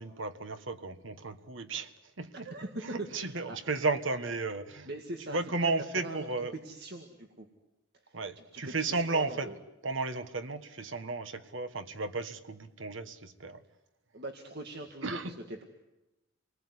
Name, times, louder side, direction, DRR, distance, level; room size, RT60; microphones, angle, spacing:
voice 1, 0.0-2.5 2.8-6.5 8.1-9.5 9.8-13.6 15.0-15.3, right 3 dB, 75° right, 1.6 m, -34 dB
voice 2, 3.0-3.6 4.9-5.7 6.0-7.5 8.0-8.2 8.5-9.6 14.1-15.6, right 2 dB, 55° right, 2.0 m, -42 dB
28.5 x 20.0 x 9.7 m
head